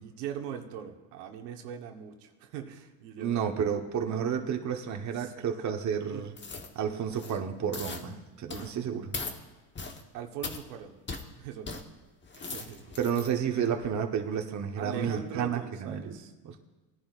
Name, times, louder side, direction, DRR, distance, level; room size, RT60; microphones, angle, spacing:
voice 1, 0.0-3.5 4.3-4.4 5.1-5.3 6.1-6.2 7.2-7.4 10.1-10.9 11.4-11.8 12.4-13.0 14.8-16.3, right 8 dB, 90° right, 3 dB, 1.3 m, -41 dB
voice 2, 3.2-6.3 6.7-9.1 13.0-16.2 16.4-16.5, right 8 dB, 35° right, 4 dB, 1.1 m, -31 dB
sound 1, 6.4-6.7 7.1-7.4 7.7-8.0 8.5-8.7 9.1-9.4 9.8-10.0 10.4-10.6 11.1-11.2 11.7-11.8 12.2-13.3 13.8-13.9, left 4 dB, 25° left, 1.1 m, -39 dB
19.0 x 10.5 x 2.5 m, 1.2 s
supercardioid pair, 100°, 47 cm